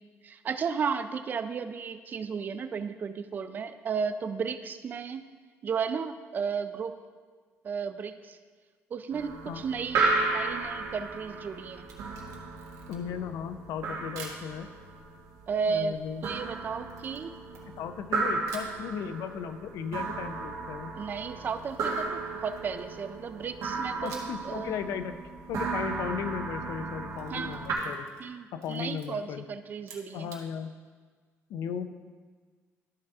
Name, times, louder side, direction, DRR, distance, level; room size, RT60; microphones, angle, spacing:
voice 1, 0.2-5.3 5.6-7.0 7.6-8.4 8.9-11.9 15.5-15.9 16.2-17.3 21.0-24.7 27.3-27.7 28.2-30.3, right 6 dB, 35° right, 11 dB, 0.4 m, -34 dB
sound 1, 9.1-27.7, right 3 dB, 70° right, 1.6 m, -34 dB
Camera, 11.8-13.2 14.2-14.5 16.9-18.1 18.5-18.8 21.4-23.0 24.1-24.5 24.8-24.9 26.9-28.3 28.6-29.1 29.8-30.5, right 5 dB, 85° right, 1.4 m, -49 dB
voice 2, 12.9-14.7 15.7-16.3 17.8-20.9 24.0-25.2 25.5-28.1 28.5-29.5 30.1-30.8 31.5-31.9, left 8 dB, 75° left, 10 dB, 0.5 m, -36 dB
13.0 x 4.7 x 3.5 m, 1.5 s
cardioid pair, 155°, 5 cm